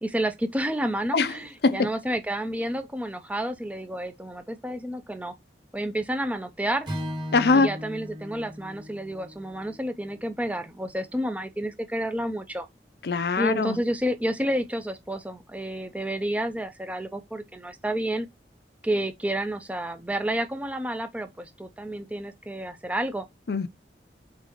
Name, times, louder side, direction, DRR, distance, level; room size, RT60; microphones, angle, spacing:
voice 1, 0.0-5.3 5.7-6.9 7.5-12.7 13.4-18.3 18.8-23.3, right 1 dB, 10° right, 0.5 m, -30 dB
Strum, 6.9-11.2, equal, 25° right, 2.0 m, -38 dB
voice 2, 7.3-7.7 13.0-13.8 23.5-23.7, left 4 dB, 60° left, 0.5 m, -22 dB
4.2 x 3.9 x 2.9 m
head